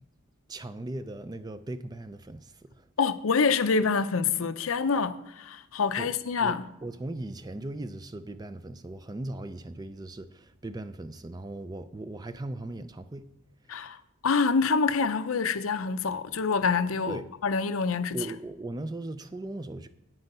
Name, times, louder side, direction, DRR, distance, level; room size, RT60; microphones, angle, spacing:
voice 1, 0.5-2.9 6.0-6.1 6.4-13.2 17.1-17.2 18.1-19.9, right 2 dB, 20° right, 0.4 m, -38 dB
voice 2, 3.0-6.6 13.7-14.0 14.2-18.2, left 5 dB, 75° left, 0.6 m, -26 dB
9.0 x 7.8 x 5.4 m
head